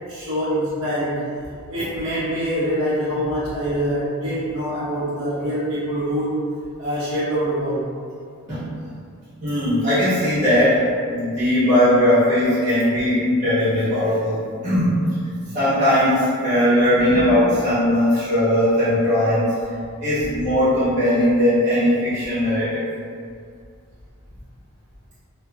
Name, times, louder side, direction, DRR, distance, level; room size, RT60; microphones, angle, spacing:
voice 1, 0.1-1.2 1.7-6.4 6.8-7.9 17.1-17.4, equal, 75° right, -11 dB, 1.1 m, -24 dB
voice 2, 9.4-10.8 11.1-14.4 14.6-14.9 15.5-19.5 20.0-22.8, left 1 dB, 35° right, -16 dB, 1.3 m, -19 dB
3.0 x 2.1 x 2.4 m, 2.2 s
head